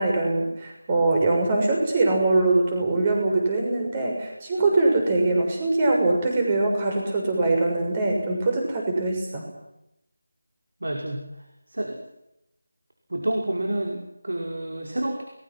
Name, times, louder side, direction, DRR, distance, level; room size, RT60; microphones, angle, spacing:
voice 1, 0.0-9.5, right 2 dB, 20° right, 2 dB, 6.4 m, -22 dB
voice 2, 10.8-11.3 11.7-12.0 13.1-15.2, right 1 dB, 85° right, 1 dB, 5.6 m, -29 dB
30.0 x 21.0 x 6.2 m, 0.87 s
figure-of-eight pair, 175°, 0 cm